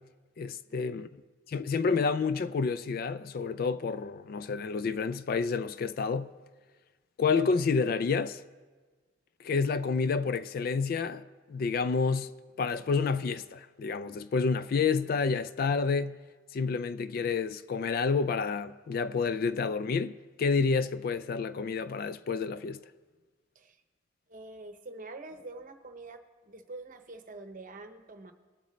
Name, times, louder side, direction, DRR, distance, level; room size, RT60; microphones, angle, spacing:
voice 1, 0.4-1.1 1.5-6.3 7.2-8.4 9.4-12.3 12.6-16.2 16.5-22.8, left 5 dB, 50° left, 0.3 m, -29 dB
voice 2, 24.3-28.3, right 2 dB, 45° right, 0.8 m, -46 dB
20.0 x 7.9 x 3.1 m
head